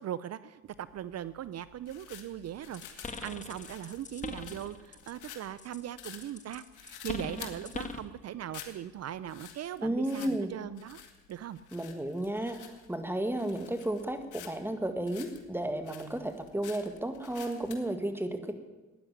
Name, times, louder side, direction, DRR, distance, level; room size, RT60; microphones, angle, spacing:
voice 1, 0.0-11.0 11.3-11.6, right 11 dB, 55° right, 16 dB, 0.6 m, -40 dB
sound 1, 0.7-17.9, left 9 dB, 80° left, 2.0 m, -51 dB
sound 2, 2.7-5.3 5.6-8.1, left 3 dB, 25° left, 1.4 m, -41 dB
voice 2, 9.8-10.5 11.7-12.6 12.9-18.6, right 1 dB, 5° right, 8 dB, 1.9 m, -33 dB
13.0 x 9.8 x 9.9 m, 1.2 s
cardioid pair, 90°, 30 cm